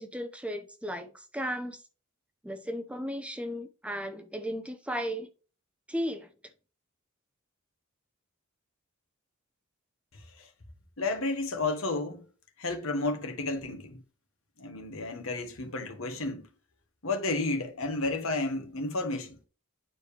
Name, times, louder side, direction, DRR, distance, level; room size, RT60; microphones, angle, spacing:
voice 1, 0.0-1.8 2.4-5.3 5.9-6.3, equal, 5° right, 0.7 m, -35 dB
voice 2, 10.1-10.5 11.0-12.2 12.6-14.0 14.6-16.5 17.0-19.4, left 2 dB, 75° left, 1.5 m, -32 dB
9.2 x 4.9 x 3.3 m
head